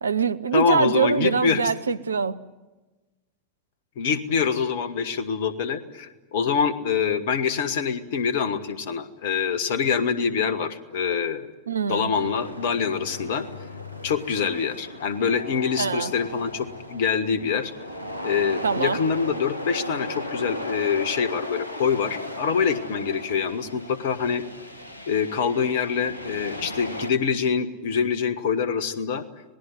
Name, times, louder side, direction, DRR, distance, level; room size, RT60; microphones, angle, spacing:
voice 1, 0.0-2.4 11.7-12.1 15.8-16.1 18.6-19.0, right 5 dB, 75° right, 14 dB, 0.8 m, -24 dB
voice 2, 0.5-1.6 4.0-11.5 11.9-13.4 14.0-17.7 18.2-24.4 25.1-29.2, left 6 dB, 55° left, 14 dB, 1.5 m, -25 dB
sound 1, 12.1-27.1, left 1 dB, 80° left, 1.4 m, -36 dB
26.0 x 19.5 x 9.6 m, 1.2 s
figure-of-eight pair, 90°, 0 cm